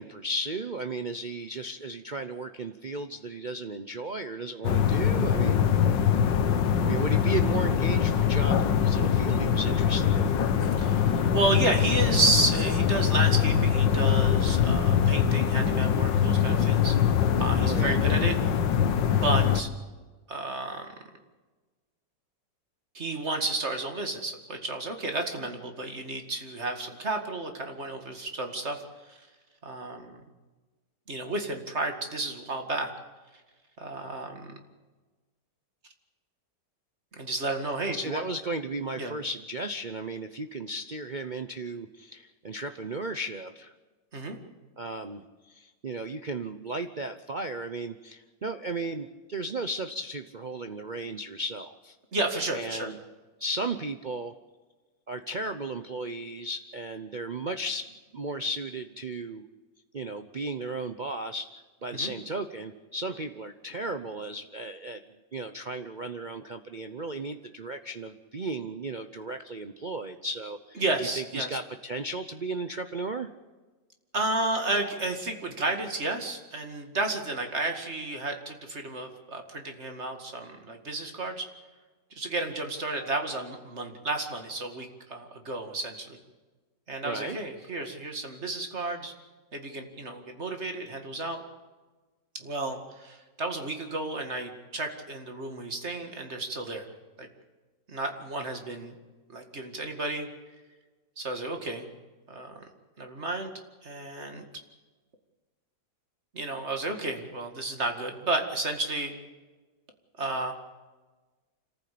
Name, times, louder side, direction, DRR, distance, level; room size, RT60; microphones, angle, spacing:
voice 1, 0.0-5.7 6.8-10.3 17.6-18.0 37.9-43.7 44.8-52.0 52.5-53.0 53.4-54.3 55.1-59.4 59.9-61.5 61.8-65.0 65.3-73.3 87.0-87.4, right 2 dB, 60° right, 8 dB, 0.5 m, -35 dB
sound 1, 4.6-19.6, left 8 dB, 75° left, 1.8 m, -23 dB
voice 2, 10.8-17.0 17.4-18.5 19.0-19.7 20.3-20.9 22.9-28.8 29.1-29.2 29.6-30.2 31.1-32.9 33.8-34.6 37.1-38.2 39.0-39.2 44.1-44.4 52.1-52.9 61.9-62.1 70.8-71.5 74.1-81.5 82.2-86.2 86.9-89.1 89.5-91.4 92.4-96.9 97.2-97.3 97.9-99.0 99.3-100.3 101.2-101.9 102.3-102.6 103.0-103.5 103.8-104.4 106.3-109.1 110.2-110.5, right 2 dB, 35° right, 4 dB, 2.3 m, -31 dB
26.5 x 14.5 x 8.5 m, 1.3 s
omnidirectional pair, 2.0 m